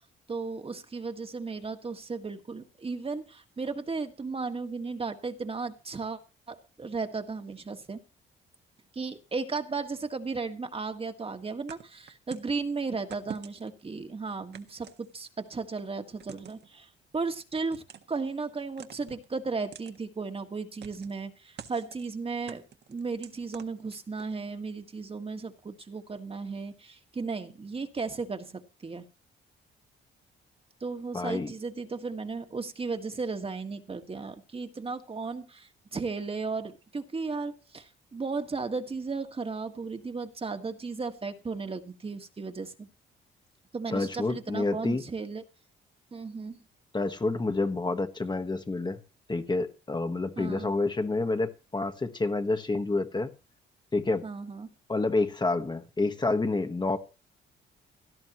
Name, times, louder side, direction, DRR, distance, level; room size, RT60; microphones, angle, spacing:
voice 1, 0.3-6.2 6.5-8.0 8.9-22.6 22.9-29.1 30.8-42.9 43.7-45.4 46.1-46.6 50.4-50.7 54.2-54.7, right 4 dB, 30° right, 7 dB, 1.7 m, -35 dB
sound 1, 11.7-12.6 13.1-13.8 14.5-15.5 16.2-16.7 17.6-18.2 18.8-19.3 19.7-20.0 20.8-21.2 21.6-22.1 22.5-24.4, right 8 dB, 60° right, 1.6 m, -46 dB
voice 2, 31.1-31.5 43.9-45.0 46.9-49.0 49.3-53.3 53.9-54.2 54.9-57.0, left 3 dB, 20° left, 8 dB, 1.5 m, -28 dB
17.0 x 13.0 x 3.1 m, 0.31 s
cardioid pair, 90°, 20 cm